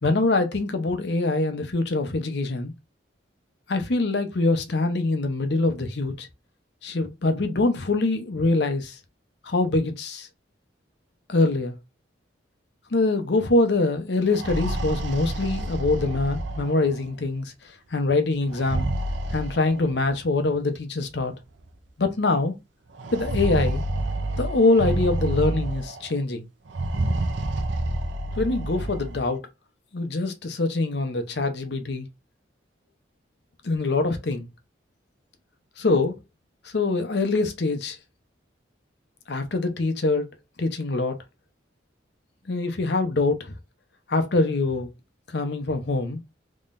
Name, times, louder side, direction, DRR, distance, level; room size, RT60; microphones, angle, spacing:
voice 1, 0.0-2.7 3.7-6.3 6.8-9.0 9.4-10.3 11.3-11.7 12.9-17.5 17.9-18.9 19.3-21.3 22.0-22.5 23.1-23.8 24.4-26.5 28.4-29.4 29.9-32.1 33.6-34.5 35.8-36.2 36.7-38.0 39.3-40.3 40.6-41.1 42.5-43.5 44.1-44.9 45.3-46.2, left 2 dB, 65° left, 0.7 m, -24 dB
sound 1, 14.2-17.1 18.5-20.1 21.1-21.2 21.6-21.7 23.0-26.1 26.7-29.3, right 1 dB, 75° right, 0.6 m, -28 dB
3.7 x 3.1 x 2.5 m
head